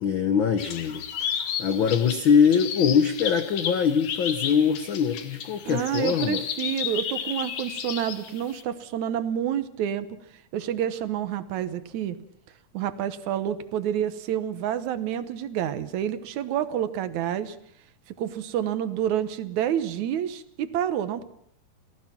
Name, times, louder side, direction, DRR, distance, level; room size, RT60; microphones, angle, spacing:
voice 1, 0.0-6.4, left 7 dB, 70° left, 9 dB, 1.1 m, -23 dB
sound 1, 0.6-8.6, left 8 dB, 85° left, 3.2 m, -33 dB
voice 2, 5.7-10.1 10.5-12.2 12.7-17.6 18.2-21.2, right 10 dB, 70° right, 13 dB, 2.3 m, -28 dB
28.5 x 17.5 x 6.0 m, 0.67 s
omnidirectional pair, 3.6 m